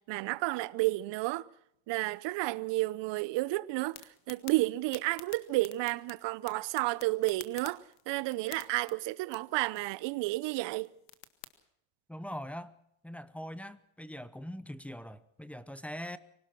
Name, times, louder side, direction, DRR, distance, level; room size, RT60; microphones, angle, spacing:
voice 1, 0.1-1.5 1.9-4.0 4.3-10.9, right 20 dB, 60° right, 0.9 m, -31 dB
sound 1, 3.9-11.5, left 14 dB, 90° left, 1.9 m, -52 dB
voice 2, 12.1-12.7 13.0-16.2, equal, 5° left, 0.8 m, -42 dB
25.0 x 18.5 x 6.1 m
cardioid pair, 130°, 49 cm